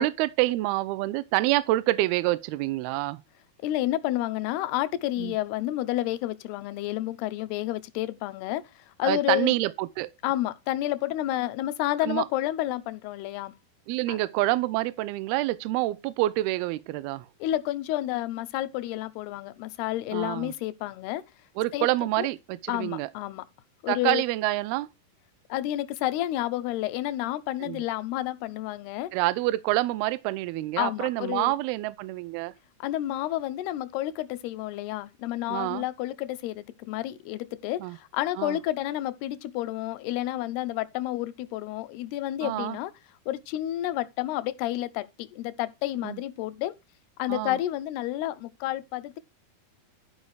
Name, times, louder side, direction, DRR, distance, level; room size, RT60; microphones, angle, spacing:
voice 1, 0.0-3.2 5.2-5.4 9.0-10.1 12.0-12.3 13.9-17.3 20.1-20.5 21.6-23.1 23.9-24.9 27.6-27.8 29.1-32.5 35.5-35.8 37.8-38.0 38.4-38.6 42.4-42.8 46.0-46.2 47.3-47.6, right 17 dB, 80° right, 2.4 m, -27 dB
voice 2, 3.6-8.6 9.0-9.6 10.2-13.5 14.1-14.2 17.4-21.2 21.7-21.9 22.2-22.3 22.7-23.4 23.8-24.2 25.5-29.1 30.8-31.5 32.8-42.9 43.3-46.8 47.2-49.2, left 14 dB, 80° left, 2.6 m, -30 dB
12.0 x 5.4 x 4.7 m
omnidirectional pair, 4.7 m